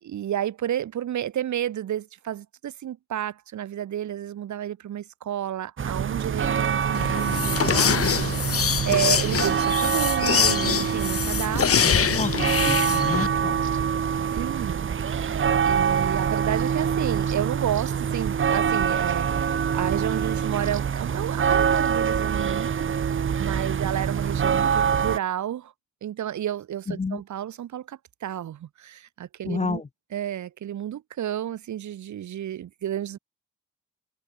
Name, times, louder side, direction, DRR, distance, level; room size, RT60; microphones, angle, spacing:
voice 1, 0.0-12.1 14.2-22.9 23.4-25.7 26.0-29.8 30.1-33.2, right 11 dB, 70° right, 1.0 m, -31 dB
sound 1, 5.8-25.2, right 7 dB, 40° right, 0.7 m, -25 dB
sound 2, 6.9-13.3, left 8 dB, 50° left, 0.9 m, -24 dB
voice 2, 11.8-12.3 12.6-13.6 26.9-27.2 29.5-29.9, left 4 dB, 20° left, 0.6 m, -30 dB
supercardioid pair, 45°, 30 cm